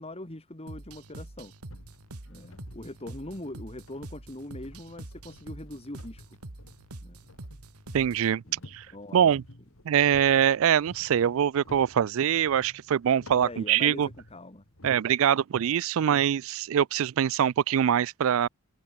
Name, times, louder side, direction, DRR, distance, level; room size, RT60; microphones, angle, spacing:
voice 1, 0.0-1.5 2.3-6.4 7.0-7.2 8.5-8.6 8.9-9.3 13.4-14.6, left 1 dB, 25° left, 2.1 m, -42 dB
sound 1, 0.7-8.3, right 1 dB, 90° right, 2.3 m, -45 dB
sound 2, 1.7-15.0, left 1 dB, 65° left, 2.9 m, -52 dB
voice 2, 7.9-8.4 8.7-8.9 9.1-9.4 9.9-14.1 14.8-18.5, right 9 dB, 65° right, 0.3 m, -24 dB
head